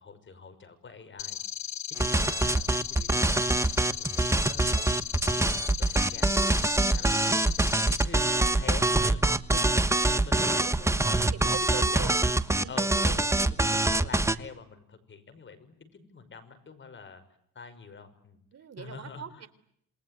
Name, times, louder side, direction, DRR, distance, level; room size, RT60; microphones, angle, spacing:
voice 1, 0.0-1.4 1.9-3.7 4.1-6.6 6.9-9.2 9.5-9.7 10.0-11.0 11.2-12.3 12.6-17.2 17.5-18.4 18.8-19.2, left 5 dB, 40° left, 10 dB, 5.9 m, -45 dB
sound 1, 1.2-8.1, left 10 dB, 65° left, 1.6 m, -36 dB
sound 2, 2.0-14.4, right 2 dB, 10° right, 1.3 m, -25 dB
voice 2, 10.4-10.7 11.1-12.9 18.5-19.5, right 8 dB, 55° right, 13 dB, 3.5 m, -42 dB
28.0 x 21.5 x 9.3 m, 0.68 s
cardioid pair, 90°, 30 cm